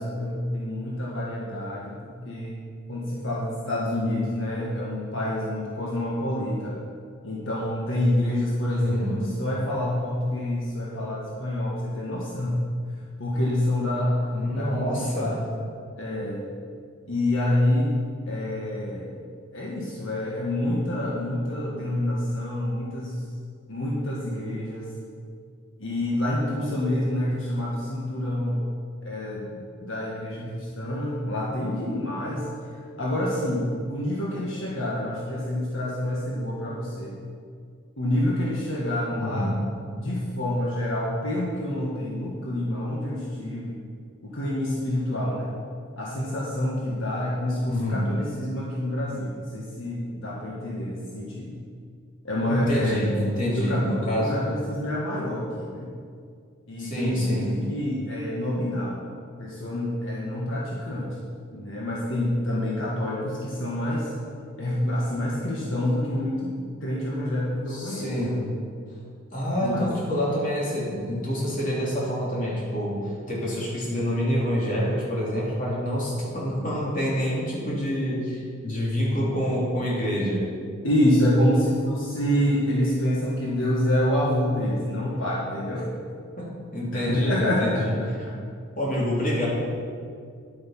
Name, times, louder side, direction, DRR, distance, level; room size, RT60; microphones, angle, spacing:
voice 1, 0.0-2.5 2.9-6.8 7.2-12.6 13.2-14.1 14.5-15.4 16.0-16.5 17.1-17.9 18.3-19.1 19.5-23.2 23.7-24.9 25.8-28.6 29.0-29.5 29.8-32.5 33.0-37.2 38.0-39.5 40.0-43.8 44.2-45.5 46.0-51.5 52.2-53.0 53.5-55.9 56.7-57.4 57.7-59.0 59.4-61.1 61.5-64.1 64.6-66.5 66.8-68.4 69.6-69.9 80.8-85.9 86.9-87.9 88.3-88.4, left 1 dB, 70° left, -4 dB, 1.6 m, -27 dB
voice 2, 8.7-9.3 14.3-15.4 39.2-39.6 47.7-48.2 52.5-54.4 56.8-57.6 67.7-68.4 69.3-80.5 86.4-88.2 88.7-89.5, equal, 40° left, -6 dB, 3.2 m, -27 dB
11.0 x 8.2 x 5.8 m, 2.3 s
head